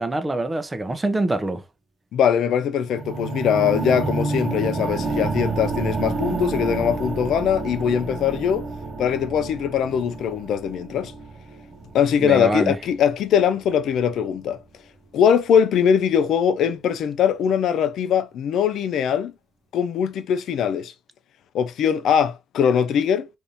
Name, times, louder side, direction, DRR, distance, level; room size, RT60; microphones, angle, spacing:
voice 1, 0.0-1.6 12.2-12.8, right 2 dB, 20° right, 0.6 m, -24 dB
voice 2, 2.1-8.7 9.0-11.1 11.9-14.6 15.1-19.3 19.7-20.9 21.5-23.3, left 8 dB, 75° left, 0.4 m, -21 dB
sound 1, 2.9-13.0 13.7-13.8, right 3 dB, 40° right, 0.9 m, -29 dB
3.5 x 2.6 x 2.6 m
cardioid pair, 90°, 0 cm